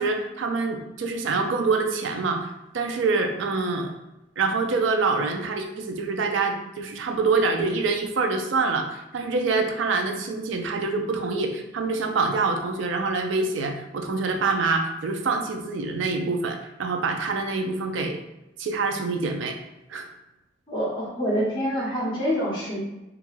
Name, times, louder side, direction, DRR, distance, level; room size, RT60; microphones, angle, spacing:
voice 1, 0.0-3.9 4.4-18.2 18.6-19.6 19.9-20.1, right 4 dB, 90° right, 4 dB, 0.4 m, -26 dB
voice 2, 20.7-22.8, equal, 25° left, -7 dB, 0.7 m, -26 dB
2.3 x 2.1 x 3.1 m, 0.92 s
head